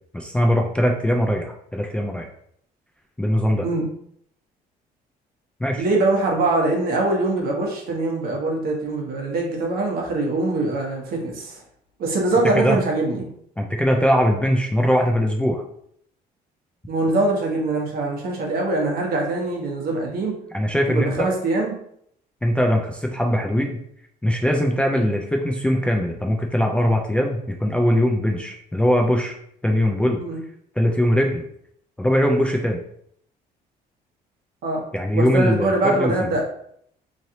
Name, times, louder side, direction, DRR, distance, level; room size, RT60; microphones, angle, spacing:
voice 1, 0.1-2.3 3.2-3.7 5.6-5.8 12.6-12.8 13.6-15.6 20.5-21.3 22.4-23.8 24.2-29.4 29.6-30.2 30.8-31.4 32.0-32.8 34.9-36.3, equal, 5° left, 0 dB, 0.4 m, -21 dB
voice 2, 5.8-11.6 12.0-13.3 16.9-20.3 20.9-21.7 30.2-30.4 34.6-34.8 35.1-36.4, right 2 dB, 65° right, -1 dB, 1.0 m, -23 dB
3.1 x 2.7 x 2.7 m, 0.68 s
cardioid pair, 110°, 17 cm